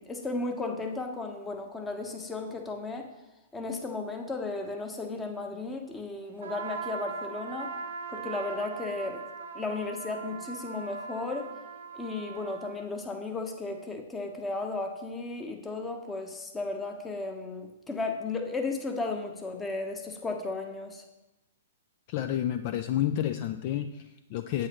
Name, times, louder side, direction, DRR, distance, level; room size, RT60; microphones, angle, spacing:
voice 1, 0.0-3.1 3.5-7.7 8.1-9.2 9.5-11.5 11.9-21.0, left 3 dB, 10° left, 4 dB, 1.0 m, -34 dB
Trumpet, 6.4-12.8, right 5 dB, 65° right, 0.9 m, -40 dB
voice 2, 22.1-24.7, left 11 dB, 45° left, 9 dB, 0.4 m, -30 dB
8.6 x 8.1 x 3.0 m, 1.0 s
hypercardioid pair, 120°, 0 cm